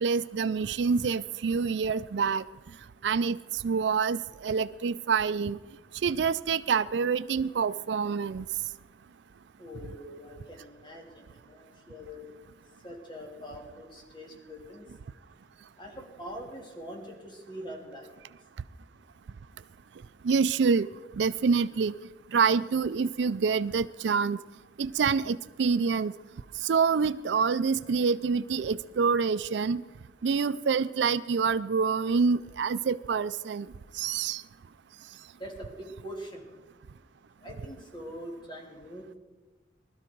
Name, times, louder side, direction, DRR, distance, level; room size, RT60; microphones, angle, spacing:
voice 1, 0.0-2.4 3.0-5.6 6.0-8.5 20.2-20.9 21.1-21.9 22.3-24.4 24.8-26.1 26.6-29.8 30.2-33.7 33.9-34.4, right 5 dB, 70° right, 16 dB, 0.4 m, -26 dB
voice 2, 9.6-12.3 12.8-14.9 15.8-18.1 35.3-36.5 37.4-39.2, equal, 25° left, 0 dB, 3.0 m, -43 dB
20.0 x 13.0 x 4.6 m, 1.3 s
head